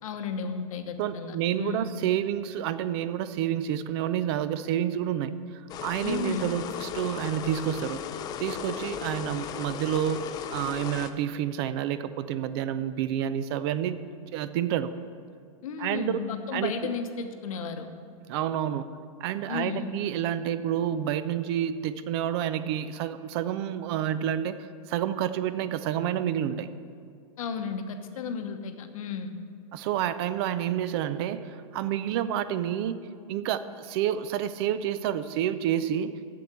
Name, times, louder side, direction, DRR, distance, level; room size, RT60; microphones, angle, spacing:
voice 1, 0.0-1.9 6.0-6.5 15.6-17.9 19.5-19.9 27.4-29.3, left 5 dB, 75° left, 7 dB, 1.0 m, -33 dB
voice 2, 1.0-8.0 8.4-14.0 14.3-14.9 15.8-16.2 16.5-16.7 18.3-18.9 19.2-24.6 24.9-26.7 29.7-33.0 33.3-36.2, right 10 dB, 45° right, 13 dB, 0.5 m, -29 dB
sound 1, 5.7-11.1, left 9 dB, 20° left, 0.4 m, -36 dB
7.6 x 7.0 x 7.9 m, 2.3 s
hypercardioid pair, 140°, 18 cm